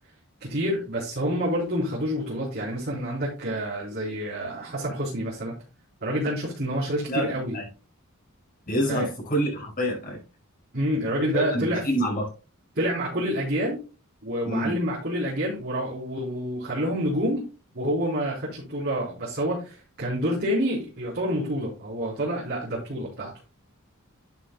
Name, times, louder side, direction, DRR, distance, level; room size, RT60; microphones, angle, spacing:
voice 1, 0.4-5.5 6.0-7.6 8.9-9.1 10.7-11.8 12.7-13.8 14.2-17.4 17.7-23.3, equal, 50° right, 4.1 m, -28 dB
voice 2, 7.1-7.7 8.7-10.2 11.3-12.3 14.4-14.8, equal, 40° left, 5.6 m, -27 dB
11.5 x 7.6 x 2.3 m
head